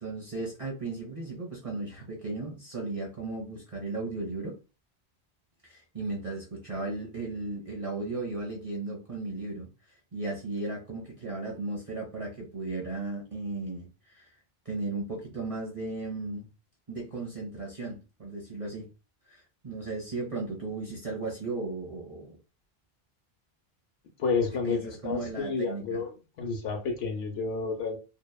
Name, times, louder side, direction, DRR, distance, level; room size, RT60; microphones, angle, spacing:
voice 1, 0.0-4.6 5.6-9.7 10.1-14.3 14.7-16.5 16.9-18.9 19.3-22.4 24.6-26.0, right 3 dB, 40° right, 0.6 m, -36 dB
voice 2, 24.2-26.1 26.4-28.0, left 4 dB, 80° left, 0.9 m, -30 dB
2.8 x 2.2 x 2.2 m
omnidirectional pair, 1.0 m